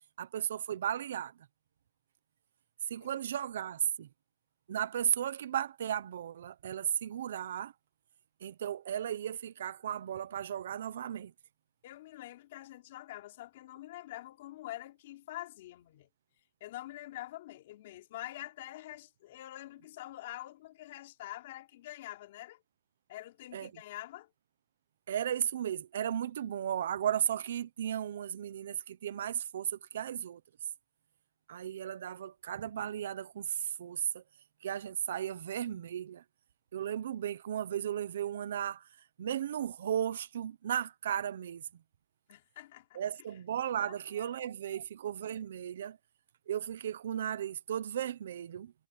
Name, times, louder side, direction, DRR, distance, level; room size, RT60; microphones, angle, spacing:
voice 1, 0.2-1.3 2.9-4.1 4.7-7.7 8.4-11.3 23.5-23.7 25.1-30.4 31.5-34.2 34.6-36.2 36.7-38.8 39.2-41.6 42.9-46.0 46.5-48.7, right 10 dB, 80° right, 0.9 m, -35 dB
voice 2, 11.8-16.1 16.6-22.6 23.1-24.3 42.3-43.0 43.8-44.8, left 15 dB, 50° left, 4.4 m, -46 dB
supercardioid pair, 175°, 0 cm